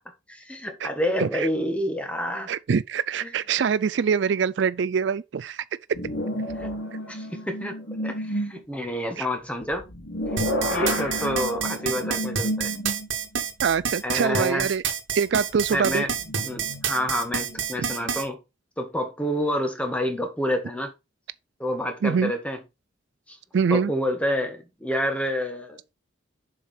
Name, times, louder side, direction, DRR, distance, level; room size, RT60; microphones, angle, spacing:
voice 1, 0.3-2.5 3.2-3.3 6.5-6.7 7.1-9.9 10.3-10.4 10.7-12.7 14.0-14.7 15.7-16.1 16.4-18.4 18.8-20.9 21.6-22.6 23.3-23.4 23.7-25.9, equal, 5° left, 1.5 m, -28 dB
voice 2, 2.5-5.6 9.2-9.3 13.6-14.8 15.2-16.0 22.0-22.3 23.5-23.9, right 6 dB, 70° right, 0.4 m, -24 dB
sound 1, 5.9-8.6 9.6-13.3 13.8-13.9 15.7-18.2, equal, 85° left, 2.5 m, -31 dB
sound 2, 10.4-18.2, right 7 dB, 90° right, 1.4 m, -28 dB
7.3 x 4.9 x 4.3 m
head